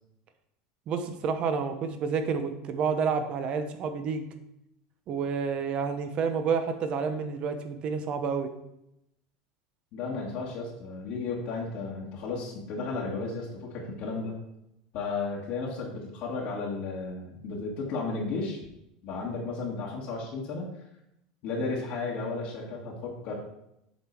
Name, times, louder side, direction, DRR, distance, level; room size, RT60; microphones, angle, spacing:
voice 1, 0.9-4.3 5.1-8.5, right 5 dB, 45° right, 8 dB, 0.9 m, -29 dB
voice 2, 9.9-14.3 14.9-18.6 19.0-20.7 21.4-23.3, left 3 dB, 60° left, -4 dB, 1.7 m, -34 dB
7.8 x 3.7 x 4.6 m, 0.82 s
supercardioid pair, 110°, 3 cm